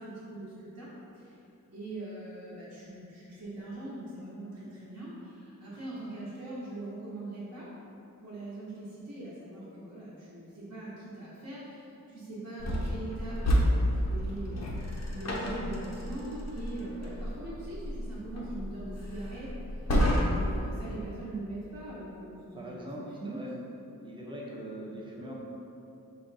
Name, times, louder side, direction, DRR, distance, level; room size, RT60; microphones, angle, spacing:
voice 1, 0.0-1.4 1.7-7.7 8.2-14.7 15.1-19.8 20.2-23.5, right 1 dB, 45° right, -10 dB, 1.0 m, -41 dB
sound 1, 12.6-20.7, equal, 50° left, 0.6 m, -30 dB
voice 2, 22.5-23.5 24.0-25.3, equal, 15° right, -4 dB, 0.7 m, -41 dB
4.9 x 2.3 x 3.9 m, 2.8 s
wide cardioid pair, 110°, 35 cm